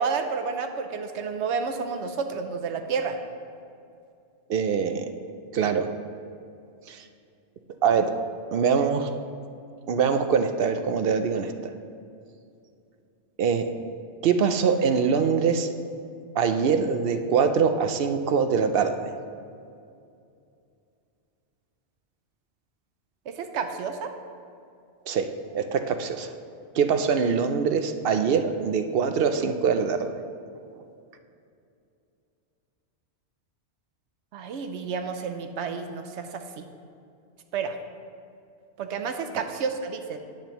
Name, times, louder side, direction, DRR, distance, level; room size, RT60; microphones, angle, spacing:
voice 1, 0.0-3.2 23.3-24.1 34.3-36.7 37.5-37.8 38.8-40.2, right 5 dB, 90° right, 6 dB, 1.0 m, -30 dB
voice 2, 4.5-5.1 5.5-5.9 6.9-7.1 7.8-8.1 8.5-9.1 9.9-11.5 13.4-13.7 14.2-15.7 16.4-18.9 25.1-25.3 25.5-26.3 26.7-30.1 39.3-39.4, right 6 dB, 65° right, 8 dB, 0.7 m, -23 dB
10.0 x 8.8 x 3.0 m, 2.4 s
omnidirectional pair, 1.1 m